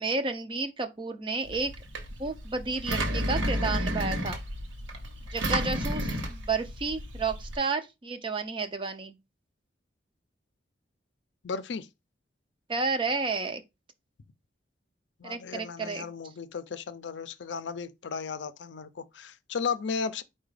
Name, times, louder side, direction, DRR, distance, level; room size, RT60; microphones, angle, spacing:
voice 1, 0.0-1.7 2.2-4.4 5.3-9.2 12.7-13.6 15.2-16.1, right 3 dB, 25° right, 0.4 m, -31 dB
Engine, 1.5-7.6, equal, 90° right, 0.8 m, -32 dB
voice 2, 11.4-11.9 15.2-20.2, left 5 dB, 70° left, 0.5 m, -35 dB
4.8 x 2.2 x 4.8 m
head